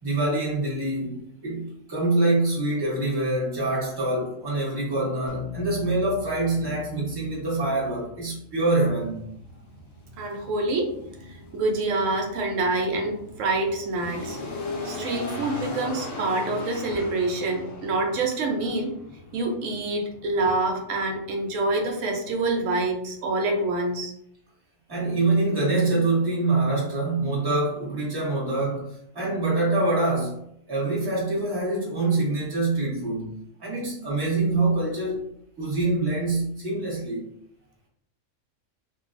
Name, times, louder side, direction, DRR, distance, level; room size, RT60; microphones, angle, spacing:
voice 1, 0.0-9.2 24.9-33.3 33.6-35.2 35.6-37.2, right 2 dB, 20° right, -6 dB, 1.0 m, -25 dB
sound 1, 5.3-9.9, left 3 dB, 40° right, 0.8 m, -43 dB
sound 2, 8.8-23.2, left 2 dB, 65° left, 1.1 m, -39 dB
voice 2, 10.2-10.9 11.3-14.4 14.8-18.9 19.3-24.1, right 2 dB, 70° right, 2 dB, 0.9 m, -26 dB
3.0 x 2.3 x 2.4 m, 0.74 s
omnidirectional pair, 1.5 m